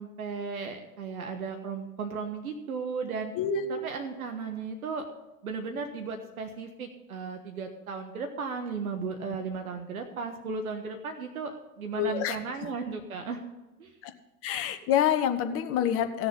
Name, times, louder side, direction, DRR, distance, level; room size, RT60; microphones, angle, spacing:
voice 1, 0.0-3.3 3.7-5.0 5.4-13.4 13.8-14.0, right 5 dB, 70° right, 5 dB, 1.4 m, -35 dB
voice 2, 3.4-3.8 12.0-12.3 14.0-14.1 14.4-16.3, left 9 dB, 30° left, 8 dB, 1.0 m, -27 dB
16.0 x 7.1 x 5.5 m, 1.0 s
figure-of-eight pair, 100°, 45 cm